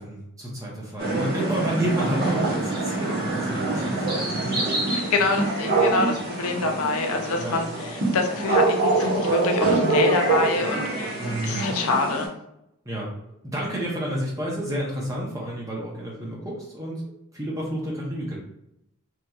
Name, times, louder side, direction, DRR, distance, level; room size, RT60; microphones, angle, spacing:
voice 1, 0.0-4.5 5.2-5.3 7.4-7.6 11.2-11.7 12.8-13.1 13.4-17.0 17.3-18.4, right 1 dB, 15° right, -3 dB, 0.7 m, -30 dB
sound 1, 1.0-12.3, right 3 dB, 45° right, 0.9 m, -25 dB
voice 2, 4.9-12.3, left 3 dB, 75° left, 3 dB, 0.5 m, -26 dB
3.0 x 2.6 x 2.3 m, 0.81 s
head